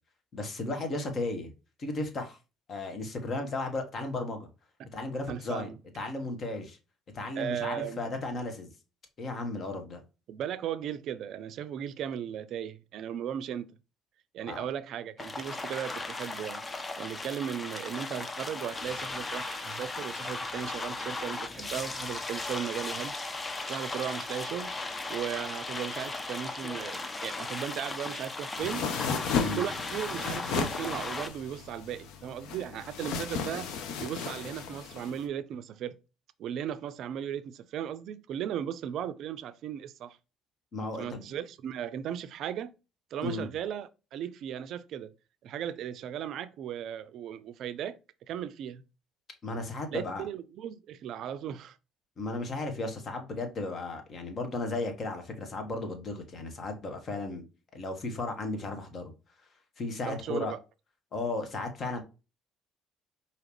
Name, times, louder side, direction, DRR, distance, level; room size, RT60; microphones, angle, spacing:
voice 1, 0.3-1.5 1.8-2.4 2.7-4.5 4.9-6.8 7.1-8.7 9.2-10.0 14.5-14.6 29.4-29.6 40.7-41.2 43.2-43.5 49.4-50.2 52.2-57.4 57.7-59.1 59.8-60.5 61.1-62.0, left 2 dB, 50° left, 1.2 m, -35 dB
voice 2, 5.3-5.8 7.4-8.1 10.3-13.7 14.3-16.6 17.0-23.2 23.7-24.7 25.1-28.8 29.4-33.7 34.0-36.0 36.4-40.2 40.9-42.7 43.1-45.1 45.4-48.0 48.3-48.8 49.9-51.8 60.0-60.6, right 9 dB, 65° right, 0.3 m, -36 dB
sound 1, 15.2-31.3, left 3 dB, 30° left, 0.7 m, -37 dB
sound 2, 28.6-35.2, left 6 dB, 70° left, 0.6 m, -35 dB
4.9 x 2.8 x 3.1 m
hypercardioid pair, 55°, 0 cm